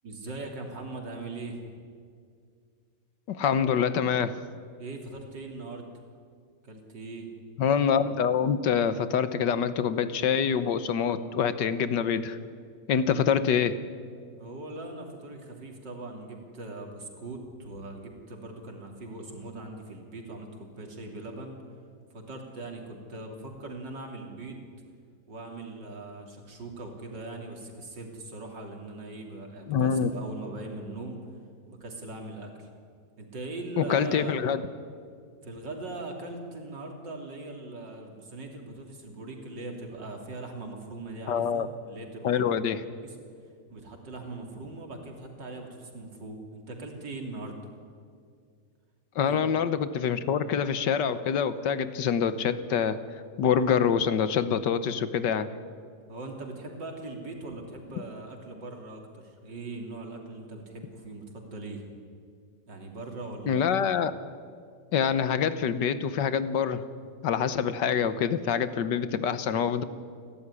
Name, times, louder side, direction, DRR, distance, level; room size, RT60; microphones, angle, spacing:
voice 1, 0.0-1.6 4.8-5.9 6.6-7.3 14.4-21.6 22.1-24.7 25.3-31.2 31.7-32.7 33.2-34.4 35.4-42.5 43.0-43.2 43.7-47.6 49.2-49.5 56.1-61.8 62.7-63.8, right 2 dB, 70° right, 2 dB, 3.7 m, -40 dB
voice 2, 3.3-4.4 7.6-12.4 12.9-13.9 29.7-30.1 33.8-34.6 41.3-41.7 42.2-42.8 49.1-53.0 53.4-55.5 63.5-64.1 64.9-66.8 67.2-69.8, left 7 dB, 75° left, 13 dB, 1.6 m, -26 dB
29.5 x 13.0 x 9.8 m, 2.2 s
omnidirectional pair, 2.0 m